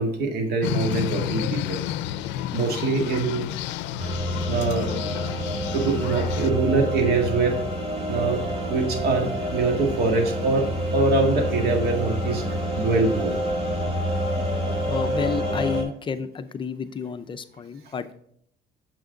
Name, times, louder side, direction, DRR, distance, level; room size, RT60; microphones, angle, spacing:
voice 1, 0.0-1.8 2.5-3.5 4.5-4.9 5.7-7.6 8.1-8.4 8.7-12.4 12.8-13.4, right 3 dB, 60° right, 3 dB, 1.8 m, -24 dB
sound 1, 0.6-6.5, left 12 dB, 85° left, 0.5 m, -30 dB
sound 2, 4.0-15.8, equal, 30° right, 2.4 m, -27 dB
voice 2, 14.9-18.1, left 6 dB, 25° left, 10 dB, 0.5 m, -30 dB
7.1 x 6.1 x 3.8 m, 0.67 s
cardioid pair, 130°, 18 cm